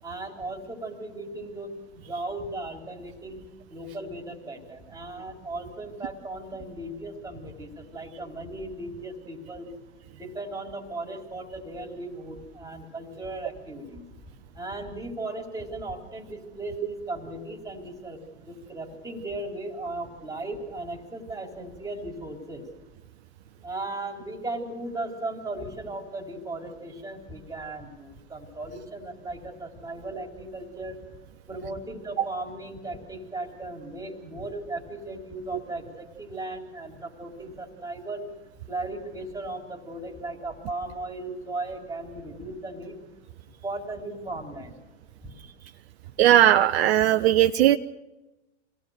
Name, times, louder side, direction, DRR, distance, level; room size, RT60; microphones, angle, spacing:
voice 1, 0.0-3.4 3.7-9.7 10.1-14.0 14.5-22.6 23.6-31.0 31.5-38.3 38.7-43.0 43.6-44.7 45.2-45.3, right 2 dB, 10° right, 1 dB, 4.2 m, -37 dB
voice 2, 46.2-47.8, right 12 dB, 60° right, 8 dB, 0.8 m, -18 dB
26.5 x 18.0 x 6.7 m, 1.0 s
hypercardioid pair, 110°, 36 cm